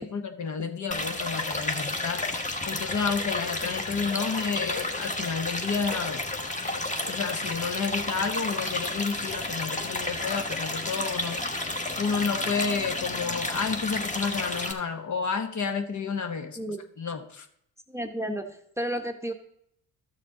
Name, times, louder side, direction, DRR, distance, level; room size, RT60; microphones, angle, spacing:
voice 1, 0.0-6.2 6.6-11.4 12.0-16.6 17.0-17.5, left 5 dB, 45° left, 7 dB, 1.1 m, -31 dB
sound 1, 0.9-14.7, left 2 dB, 20° left, 1.4 m, -31 dB
voice 2, 17.9-19.3, right 1 dB, 5° right, 5 dB, 0.9 m, -32 dB
12.5 x 6.6 x 3.8 m, 0.73 s
supercardioid pair, 65°, 41 cm